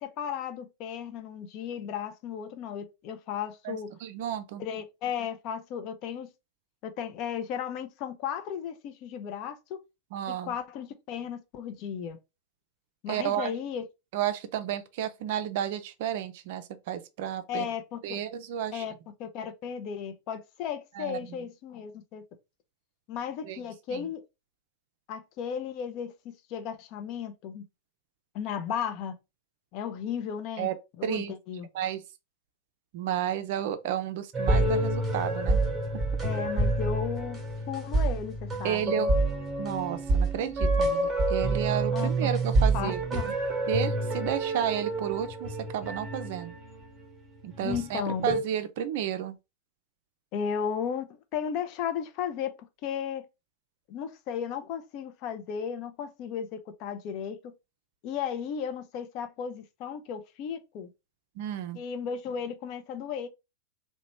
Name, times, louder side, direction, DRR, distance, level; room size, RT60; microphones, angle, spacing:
voice 1, 0.0-3.9 4.6-6.3 6.8-9.8 10.3-12.2 13.0-13.8 17.5-18.2 18.7-18.9 19.2-22.2 23.1-24.2 25.1-27.6 28.3-29.2 29.7-30.7 31.0-31.7 36.2-37.4 37.7-39.1 41.9-42.4 42.7-43.3 47.6-48.3 50.3-52.5 52.8-53.2 53.9-57.5 58.0-60.9 61.7-63.3, left 8 dB, 40° left, 0.4 m, -35 dB
voice 2, 3.6-4.6 10.1-10.6 13.1-13.5 14.1-17.7 18.0-18.8 21.0-21.4 23.4-23.6 23.9-24.1 30.6-30.7 31.0-31.3 31.7-32.0 32.9-35.6 38.6-39.1 39.6-43.0 43.7-46.5 47.4-49.4 61.4-61.8, right 10 dB, 50° right, 0.4 m, -32 dB
sound 1, 34.3-47.0 47.5-48.4, right 2 dB, 15° right, 1.0 m, -28 dB
2.9 x 2.1 x 2.9 m
figure-of-eight pair, 90°, 0 cm